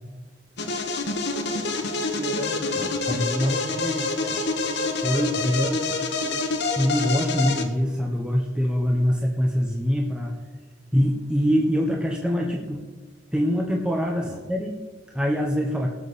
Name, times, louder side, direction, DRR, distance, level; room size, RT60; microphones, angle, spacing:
sound 1, 0.6-7.6, left 3 dB, 65° left, 1.3 m, -27 dB
voice 1, 1.9-3.1 3.4-6.4 10.3-10.4 14.1-14.4, right 1 dB, 35° right, 0 dB, 2.6 m, -39 dB
voice 2, 3.1-4.0 5.0-5.9 6.8-10.3 10.9-12.8 13.3-14.7 15.1-16.0, equal, 5° right, 0 dB, 1.0 m, -24 dB
18.5 x 7.5 x 4.2 m, 1.3 s
head